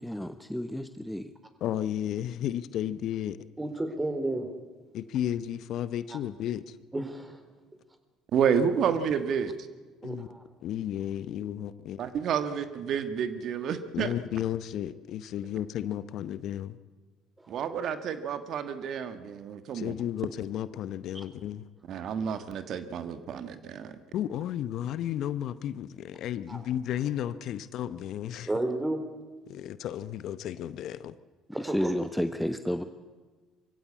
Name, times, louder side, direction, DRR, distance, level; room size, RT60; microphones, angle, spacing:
voice 1, 0.0-1.3 31.6-32.8, equal, 5° left, 9 dB, 1.1 m, -31 dB
voice 2, 1.6-3.4 4.9-6.8 10.0-10.3 10.6-12.0 13.9-16.8 19.7-21.6 24.1-28.5 29.5-31.1, left 11 dB, 65° left, 15 dB, 0.8 m, -33 dB
voice 3, 3.6-4.5 6.1-6.2 6.9-7.4 10.0-10.4 17.4-17.6 21.1-21.2 26.5-26.6 28.5-29.0 31.5-31.9, right 1 dB, 15° right, 8 dB, 3.7 m, -32 dB
voice 4, 8.3-9.5 12.0-14.1 17.5-19.9 21.9-24.0, right 7 dB, 60° right, 10 dB, 1.4 m, -30 dB
23.0 x 16.0 x 8.5 m, 1.3 s
hypercardioid pair, 65°, 0 cm